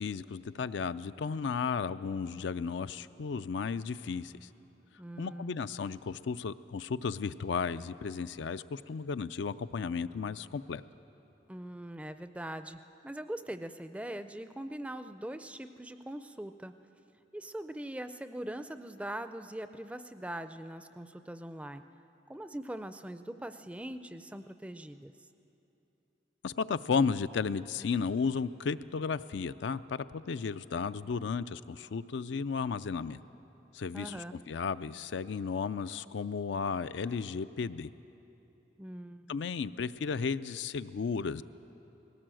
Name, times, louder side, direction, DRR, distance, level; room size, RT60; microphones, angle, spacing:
voice 1, 0.0-4.5 5.2-10.8 26.4-33.2 33.7-37.9 39.3-41.4, left 5 dB, 75° left, 13 dB, 0.4 m, -34 dB
voice 2, 5.0-5.6 11.5-16.7 17.3-21.8 22.3-25.1 33.9-34.4 38.8-39.4, right 1 dB, 5° right, 10 dB, 0.4 m, -42 dB
19.5 x 17.5 x 7.7 m, 3.0 s
head